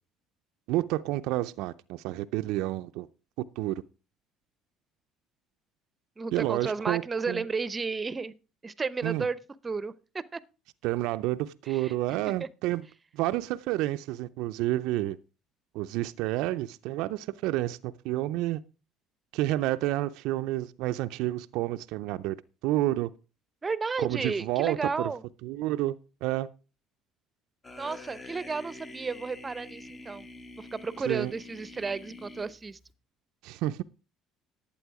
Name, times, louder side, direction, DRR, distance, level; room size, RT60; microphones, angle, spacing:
voice 1, 0.7-3.1 3.6-3.7 6.3-7.4 9.0-9.3 10.8-12.8 13.1-15.2 15.7-18.6 19.3-22.4 22.6-23.1 24.0-25.1 25.4-26.0 26.2-26.5 31.1-31.3 33.4-33.8, right 16 dB, 75° right, 0.5 m, -29 dB
voice 2, 6.2-8.3 8.6-9.4 9.6-10.4 11.7-12.2 23.6-25.2 27.7-30.3 30.6-32.8, right 4 dB, 25° right, 0.8 m, -33 dB
sound 1, 27.6-32.9, left 2 dB, 30° left, 2.0 m, -46 dB
11.5 x 8.5 x 4.8 m
supercardioid pair, 80°, 0 cm